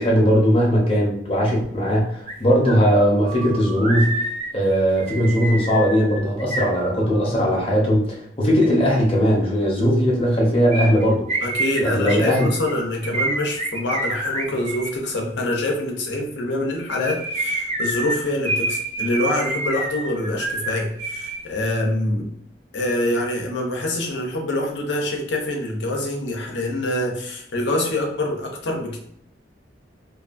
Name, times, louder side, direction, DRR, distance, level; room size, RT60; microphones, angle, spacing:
voice 1, 0.0-4.2 4.5-11.2 11.8-12.5, equal, 30° left, -3 dB, 0.7 m, -19 dB
sound 1, 2.3-2.4 2.7-7.4 10.7-14.9 16.8-21.4 21.6-21.7, right 2 dB, 35° right, 0.4 m, -28 dB
voice 2, 11.4-22.4 22.7-29.0, left 1 dB, 75° left, 1 dB, 0.6 m, -25 dB
2.6 x 2.3 x 2.4 m, 0.70 s
head